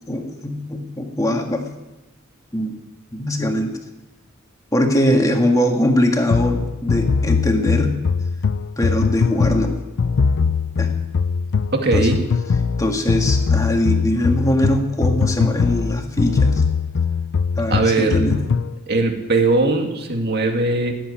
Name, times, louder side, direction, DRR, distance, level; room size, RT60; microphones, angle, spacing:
voice 1, 0.1-1.7 2.5-2.8 3.1-3.8 4.7-8.0 8.8-9.7 10.8-10.9 11.9-12.1 12.8-16.6 17.6-18.4, left 1 dB, 15° left, 3 dB, 2.0 m, -21 dB
sound 1, 6.3-18.8, left 5 dB, 60° left, 0.4 m, -21 dB
voice 2, 11.7-12.2 17.7-18.2 18.9-20.9, right 3 dB, 50° right, 3 dB, 2.2 m, -19 dB
16.5 x 8.7 x 10.0 m, 1.0 s
head